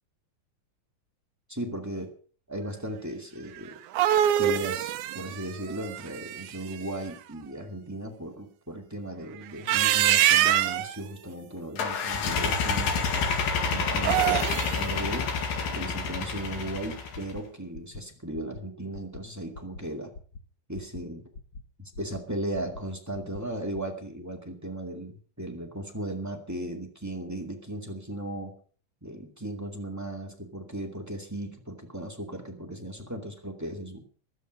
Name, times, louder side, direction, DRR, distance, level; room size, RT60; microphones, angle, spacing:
voice 1, 1.5-2.1 2.5-3.8 4.4-13.2 13.7-15.3 15.7-20.1 20.7-21.2 22.0-28.5 29.0-34.0, right 1 dB, 5° right, 3 dB, 1.6 m, -36 dB
sound 1, 3.7-6.7 9.5-11.0 13.9-14.8, right 12 dB, 75° right, 2.1 m, -24 dB
sound 2, 11.8-17.3, left 5 dB, 85° left, 3.8 m, -28 dB
sound 3, 13.5-13.8 14.1-14.4 14.7-15.0 15.3-15.6 15.9-16.2 16.5-16.8 17.1-17.4 17.7-18.0 18.3-18.6 18.9-19.2 19.5-19.8 20.1-20.4 20.7-21.0 21.3-21.6 21.9-22.2 22.5-22.8 23.1-23.4 23.7-23.8, left 3 dB, 55° left, 1.1 m, -43 dB
14.5 x 12.5 x 5.3 m, 0.42 s
omnidirectional pair, 3.9 m